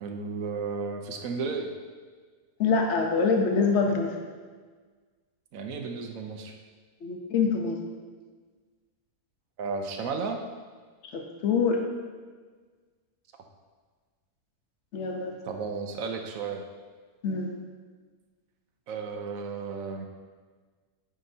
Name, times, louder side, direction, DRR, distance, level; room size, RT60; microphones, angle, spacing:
voice 1, 0.0-1.7 5.5-6.5 9.6-10.4 15.4-16.6 18.9-20.1, right 4 dB, 70° right, 4 dB, 1.0 m, -33 dB
voice 2, 2.6-4.2 7.0-7.8 11.1-11.8 14.9-15.4 17.2-17.5, left 5 dB, 55° left, 2 dB, 1.0 m, -25 dB
9.4 x 5.1 x 2.7 m, 1.5 s
omnidirectional pair, 1.7 m